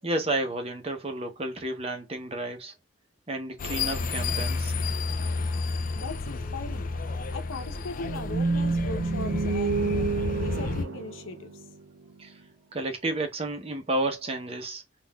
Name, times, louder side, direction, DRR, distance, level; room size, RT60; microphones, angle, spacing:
voice 1, 0.0-2.7 3.3-4.7 12.2-12.4 12.7-14.8, right 2 dB, 30° right, 0.8 m, -31 dB
sound 1, 3.6-10.8, left 3 dB, 45° left, 0.4 m, -31 dB
voice 2, 6.0-6.9 7.3-10.1 10.4-11.6, left 3 dB, 90° left, 0.7 m, -39 dB
sound 2, 8.0-12.2, right 4 dB, 75° right, 0.5 m, -29 dB
3.8 x 2.4 x 2.3 m
head